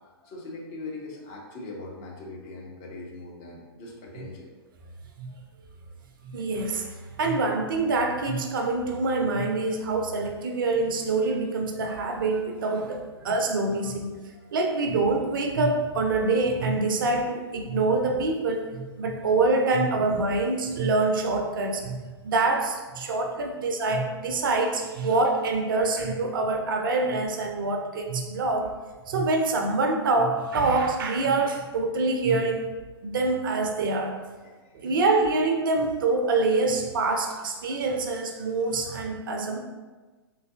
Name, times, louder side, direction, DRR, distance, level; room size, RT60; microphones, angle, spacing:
voice 1, 0.0-4.5 5.3-5.4 12.0-12.1 12.7-12.8 13.2-13.4 14.3-14.5 15.5-15.6 20.0-20.1 23.0-23.3 23.8-24.1 25.0-25.2 25.7-25.9 26.6-26.7 34.4-34.7, left 2 dB, 30° left, -2 dB, 0.7 m, -42 dB
voice 2, 6.2-14.1 14.5-28.7 29.1-32.7 33.0-34.2 34.7-39.6, right 3 dB, 50° right, 3 dB, 0.5 m, -25 dB
3.8 x 2.8 x 2.5 m, 1.3 s
figure-of-eight pair, 110°, 14 cm